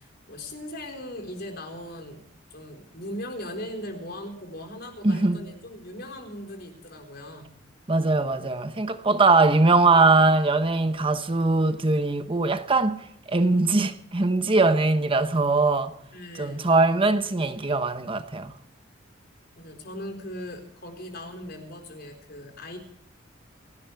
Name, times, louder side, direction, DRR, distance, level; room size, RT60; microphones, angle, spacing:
voice 1, 0.0-2.3 2.5-7.6 16.1-16.7 19.5-22.8, left 1 dB, 55° left, 4.2 m, -39 dB
voice 2, 5.0-5.4 7.9-15.9 16.3-18.5, right 3 dB, 30° right, 1.0 m, -21 dB
29.5 x 10.5 x 4.6 m
head